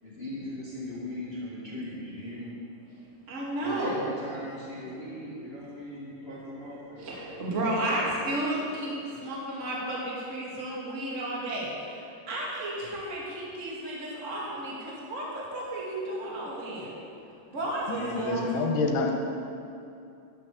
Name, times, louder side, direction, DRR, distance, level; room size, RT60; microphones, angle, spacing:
voice 1, 0.0-2.6 3.6-8.1, left 1 dB, 25° left, -8 dB, 1.3 m, -39 dB
voice 2, 3.3-4.0 7.0-16.9 17.5-18.5, right 1 dB, 25° right, -5 dB, 1.8 m, -33 dB
voice 3, 17.9-19.3, left 3 dB, 75° left, 1 dB, 2.6 m, -28 dB
12.0 x 6.1 x 7.2 m, 2.6 s
omnidirectional pair, 4.0 m